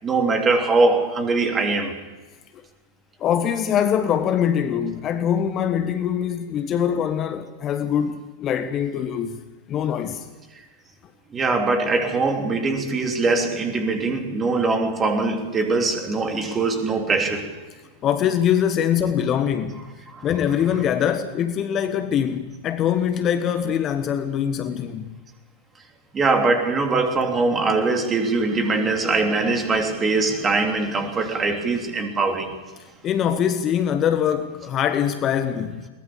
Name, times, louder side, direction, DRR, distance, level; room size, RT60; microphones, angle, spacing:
voice 1, 0.0-2.0 11.3-17.5 20.1-20.3 26.1-32.6, right 3 dB, 20° right, 3.3 m, -22 dB
voice 2, 3.2-9.4 9.7-10.3 18.0-19.9 20.2-25.1 33.0-35.9, left 9 dB, 30° left, 1.3 m, -23 dB
22.0 x 20.0 x 7.0 m
figure-of-eight pair, 95°, 0 cm